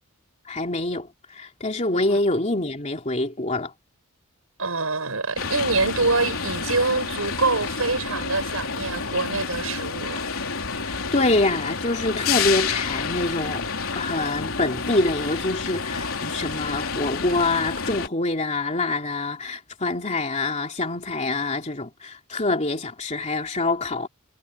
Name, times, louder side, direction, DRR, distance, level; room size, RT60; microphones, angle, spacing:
voice 1, 0.5-3.7 10.8-13.7 13.9-24.1, left 2 dB, 30° left, 3.1 m, -25 dB
voice 2, 4.6-10.3, right 3 dB, 75° right, 6.8 m, -25 dB
sound 1, 5.4-18.1, left 5 dB, 70° left, 3.8 m, -29 dB
head